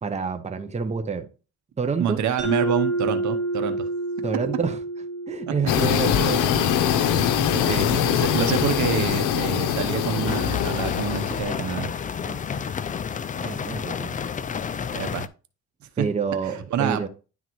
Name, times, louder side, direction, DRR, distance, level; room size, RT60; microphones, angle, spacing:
voice 1, 0.0-1.3 1.8-2.2 4.2-4.8 5.3-6.5 7.5-7.7 12.3-12.6 13.4-14.1 16.0-17.1, right 5 dB, 20° right, 0.8 m, -28 dB
voice 2, 2.0-3.9 7.7-11.9 14.9-15.3 16.0-16.1 16.7-17.1, right 8 dB, 70° right, 0.9 m, -27 dB
Mallet percussion, 2.4-6.9, right 2 dB, 40° right, 2.2 m, -29 dB
sound 1, 5.7-11.4, left 8 dB, 85° left, 0.7 m, -23 dB
sound 2, 10.3-15.3, left 7 dB, 25° left, 0.4 m, -30 dB
10.5 x 3.7 x 3.1 m
cardioid pair, 90°, 30 cm